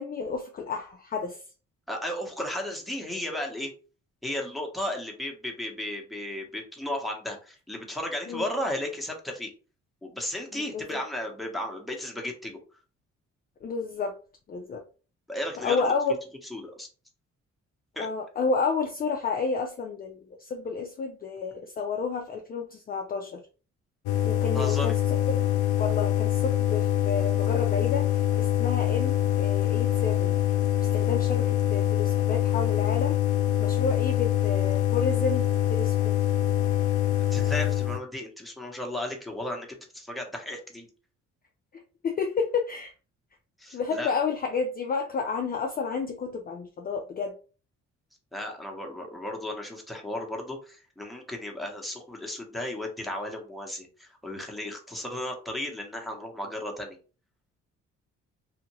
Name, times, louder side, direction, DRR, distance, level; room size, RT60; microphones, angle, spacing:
voice 1, 0.0-1.4 8.3-8.5 10.5-11.0 13.6-14.1 14.5-14.8 15.6-16.2 18.0-23.4 24.2-25.2 25.8-28.1 28.4-30.4 30.8-33.2 33.6-36.2 42.0-42.9 43.7-47.4, left 5 dB, 30° left, 3 dB, 0.4 m, -30 dB
voice 2, 1.9-3.7 4.2-9.5 10.0-12.6 15.3-15.9 16.5-16.9 18.0-18.1 24.5-24.9 37.3-40.9 43.6-44.1 48.3-57.0, left 1 dB, ahead, 0 dB, 0.9 m, -34 dB
sound 1, 24.1-38.0, left 12 dB, 85° left, 0.5 m, -25 dB
2.7 x 2.4 x 2.9 m, 0.36 s
cardioid pair, 90°, 30 cm